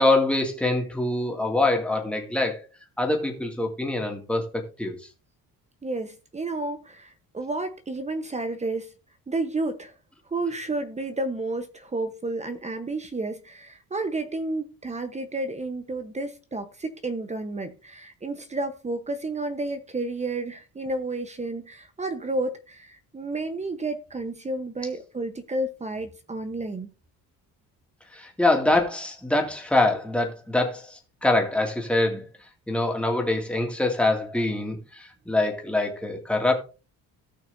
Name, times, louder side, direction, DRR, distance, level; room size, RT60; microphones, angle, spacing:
voice 1, 0.0-2.6 3.0-5.0 28.1-32.2 32.7-36.5, left 2 dB, 5° left, 2.2 m, -24 dB
voice 2, 5.8-8.9 9.3-9.9 10.3-26.9, right 2 dB, 20° right, 1.0 m, -31 dB
18.0 x 6.0 x 2.7 m
cardioid pair, 135°, 36 cm